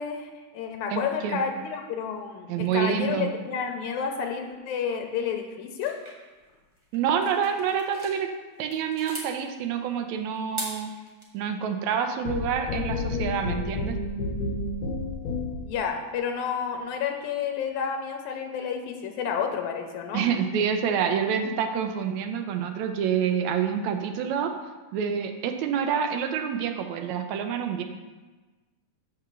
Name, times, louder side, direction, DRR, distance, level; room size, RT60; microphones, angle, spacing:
voice 1, 0.0-5.9 15.6-20.3, left 7 dB, 85° left, 4 dB, 2.1 m, -30 dB
voice 2, 0.9-1.4 2.5-3.3 6.9-8.3 8.6-10.9 11.3-14.0 20.1-24.5 24.9-27.8, right 7 dB, 80° right, 6 dB, 1.9 m, -27 dB
sound 1, 5.8-8.2 8.6-9.3 10.4-11.2, right 1 dB, 45° right, 0.3 m, -39 dB
sound 2, 12.3-15.8, left 2 dB, 65° left, 1.4 m, -30 dB
6.7 x 4.9 x 6.8 m, 1.3 s
omnidirectional pair, 3.4 m